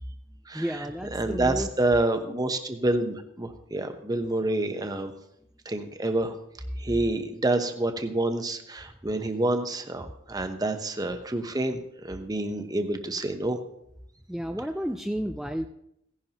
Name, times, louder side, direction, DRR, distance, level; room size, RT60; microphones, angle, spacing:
voice 1, 0.5-1.7 14.3-15.7, equal, ahead, 5 dB, 0.3 m, -31 dB
voice 2, 1.1-5.1 5.6-6.3 6.8-13.6, right 2 dB, 20° right, 7 dB, 0.9 m, -28 dB
16.0 x 10.5 x 2.9 m, 0.76 s
head